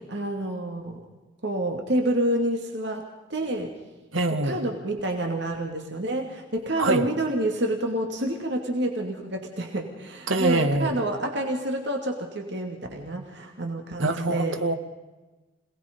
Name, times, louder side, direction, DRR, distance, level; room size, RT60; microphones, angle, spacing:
voice 1, 0.1-1.1 1.4-3.7 4.4-14.6, right 1 dB, 60° right, 2 dB, 2.6 m, -28 dB
voice 2, 4.1-4.6 6.8-7.0 10.3-11.0 14.0-14.7, right 2 dB, 90° right, 8 dB, 1.8 m, -24 dB
27.0 x 19.5 x 5.4 m, 1.2 s
head